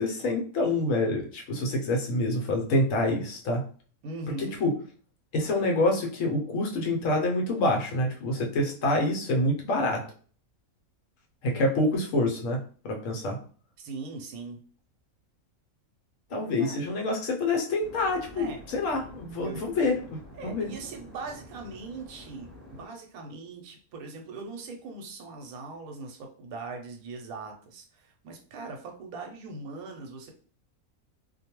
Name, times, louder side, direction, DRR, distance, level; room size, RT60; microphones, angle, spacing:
voice 1, 0.0-3.6 4.4-4.7 5.3-10.0 11.4-12.6 12.8-13.4 16.3-20.7, left 2 dB, 70° left, 1 dB, 1.0 m, -27 dB
voice 2, 4.0-4.6 13.8-14.6 16.3-16.9 18.3-18.6 19.4-19.6 20.4-30.3, right 3 dB, 85° right, 3 dB, 1.1 m, -40 dB
sound 1, 17.8-22.9, equal, 30° left, 1.1 m, -48 dB
2.5 x 2.2 x 2.9 m, 0.42 s
omnidirectional pair, 1.5 m